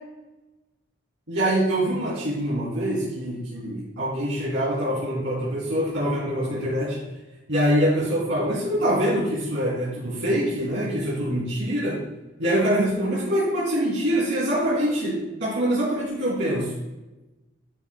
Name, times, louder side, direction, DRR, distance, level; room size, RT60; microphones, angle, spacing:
voice 1, 1.3-7.0 7.5-12.0 12.4-16.7, equal, 75° right, -8 dB, 2.8 m, -24 dB
11.0 x 9.9 x 2.3 m, 1.1 s
head